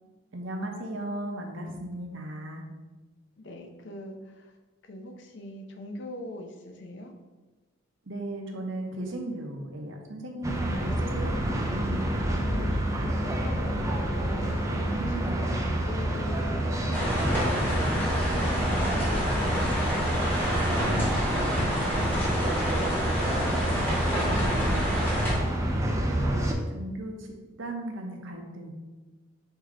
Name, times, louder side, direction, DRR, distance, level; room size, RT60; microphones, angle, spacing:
voice 1, 0.3-2.6 8.1-11.3 11.7-12.2 14.9-15.3 26.7-27.3 27.6-28.7, right 1 dB, 60° right, 2 dB, 0.7 m, -36 dB
voice 2, 3.4-4.5 4.8-7.1 10.6-11.4 12.3-14.7 15.1-22.7 23.3-25.7, left 1 dB, 55° left, 4 dB, 0.5 m, -41 dB
sound 1, 10.4-26.5, right 1 dB, 15° right, 0.3 m, -28 dB
sound 2, 16.9-25.3, equal, 10° left, 1.1 m, -29 dB
4.8 x 2.8 x 3.7 m, 1.2 s
head